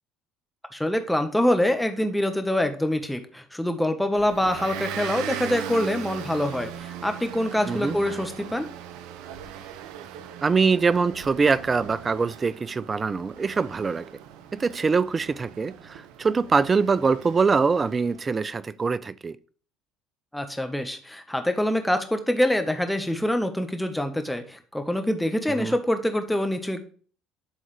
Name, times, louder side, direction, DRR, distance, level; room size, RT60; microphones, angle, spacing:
voice 1, 0.7-8.7 20.3-26.8, left 1 dB, 5° left, 1.3 m, -25 dB
Motor vehicle (road) / Engine, 4.1-18.4, right 10 dB, 70° right, 0.6 m, -39 dB
voice 2, 7.7-8.0 10.4-14.1 14.5-19.4 25.5-25.7, right 4 dB, 30° right, 0.5 m, -23 dB
11.0 x 3.8 x 3.4 m
hypercardioid pair, 70°, 0 cm